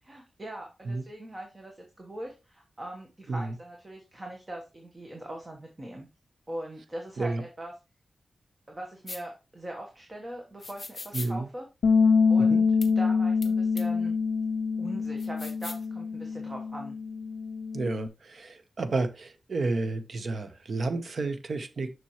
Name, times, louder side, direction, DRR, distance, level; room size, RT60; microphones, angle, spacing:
voice 1, 0.1-6.1 6.5-7.7 8.7-11.7 12.3-14.2 14.8-17.0, right 1 dB, 25° right, 1 dB, 1.2 m, -41 dB
sound 1, 9.1-9.2 10.6-11.3 12.8-12.9 13.4-13.5 13.8-13.9 15.2-15.8, left 3 dB, 30° left, 0.8 m, -40 dB
voice 2, 11.1-11.5 12.4-12.6 17.7-21.9, right 3 dB, 55° right, 9 dB, 0.9 m, -31 dB
Bass guitar, 11.8-18.1, left 5 dB, 80° left, 0.3 m, -25 dB
7.2 x 6.0 x 3.1 m, 0.28 s
wide cardioid pair, 150°, 0 cm